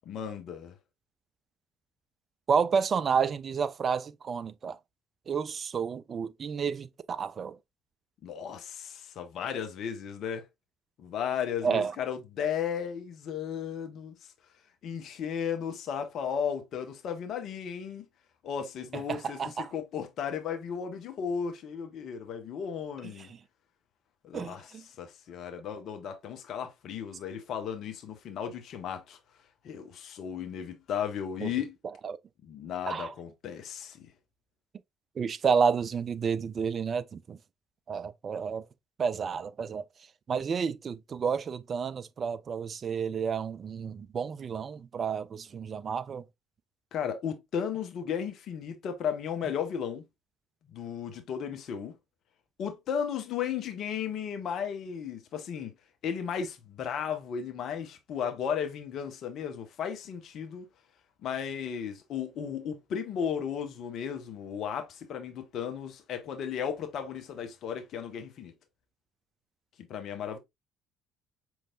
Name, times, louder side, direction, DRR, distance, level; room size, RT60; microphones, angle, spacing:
voice 1, 0.1-0.7 8.2-10.5 11.0-14.1 14.8-18.1 18.4-23.3 24.2-24.7 25.0-29.2 29.6-31.8 32.4-34.1 46.9-50.0 50.7-51.9 52.6-55.7 56.0-60.7 61.2-68.5 69.9-70.4, left 8 dB, 50° left, 0.7 m, -35 dB
voice 2, 2.5-4.8 5.3-7.6 11.6-11.9 19.1-19.7 24.3-24.8 31.4-31.5 32.0-32.2 32.9-33.1 35.2-37.4 37.9-38.6 39.0-39.8 40.3-46.3, right 6 dB, 40° right, 0.3 m, -30 dB
5.2 x 3.1 x 2.3 m
figure-of-eight pair, 50°, 0 cm